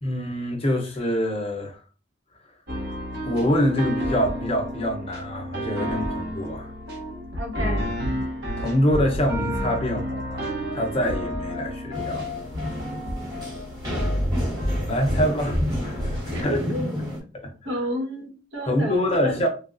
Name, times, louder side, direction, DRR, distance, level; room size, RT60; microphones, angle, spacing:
voice 1, 0.0-1.8 3.3-6.7 8.6-12.3 14.9-16.6 17.3-17.5 18.7-19.5, equal, 30° left, 0.6 m, -25 dB
sound 1, 2.7-16.4, equal, 60° right, 0.9 m, -30 dB
voice 2, 7.3-7.9 16.3-17.1 17.6-19.4, equal, 85° right, 1.3 m, -31 dB
sound 2, 11.9-17.2, left 1 dB, 20° right, 1.1 m, -31 dB
3.3 x 2.3 x 2.5 m
head